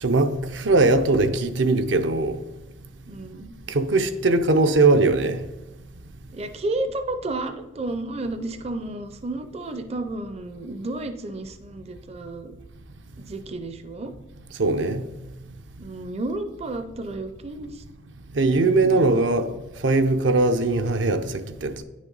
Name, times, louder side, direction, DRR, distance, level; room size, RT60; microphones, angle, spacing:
voice 1, 0.0-2.4 3.7-5.4 14.6-15.1 18.3-19.5 19.8-21.8, right 2 dB, 75° right, 0.6 m, -20 dB
voice 2, 3.1-3.5 6.3-12.5 13.2-14.1 15.8-17.8 18.5-19.2, right 2 dB, 35° right, 0.5 m, -32 dB
9.7 x 6.3 x 3.9 m
head